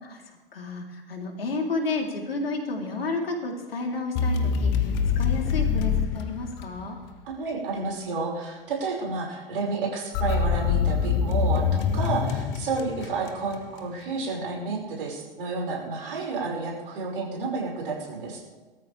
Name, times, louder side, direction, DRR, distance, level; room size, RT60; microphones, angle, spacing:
voice 1, 0.5-7.0, left 3 dB, 80° left, 1 dB, 3.6 m, -31 dB
sound 1, 4.2-7.1 10.1-13.6, left 6 dB, 40° left, 1.4 m, -25 dB
voice 2, 7.2-18.6, right 4 dB, 65° right, -1 dB, 5.7 m, -31 dB
22.5 x 13.5 x 3.4 m, 1.2 s
figure-of-eight pair, 100°, 29 cm